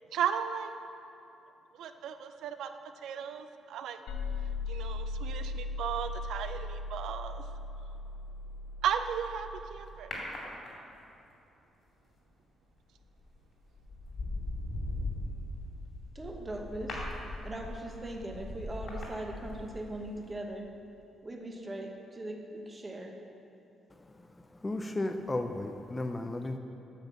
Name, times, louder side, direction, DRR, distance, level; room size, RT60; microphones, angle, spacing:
voice 1, 0.1-0.7 1.7-2.7 3.0-4.0 4.7-7.4 8.8-10.1, right 8 dB, 75° right, 9 dB, 0.4 m, -35 dB
sound 1, 4.1-9.6, left 3 dB, 90° left, 0.8 m, -38 dB
sound 2, 10.1-11.1 13.0-13.3 13.8-20.0 20.2-20.3, left 2 dB, 45° left, 2.3 m, -39 dB
voice 2, 16.1-17.0 17.4-20.7 21.2-23.2, right 1 dB, 15° right, 2 dB, 0.8 m, -40 dB
voice 3, 24.6-26.6, left 2 dB, 15° left, 6 dB, 0.4 m, -34 dB
9.2 x 5.5 x 7.1 m, 2.7 s
cardioid pair, 160°, 0 cm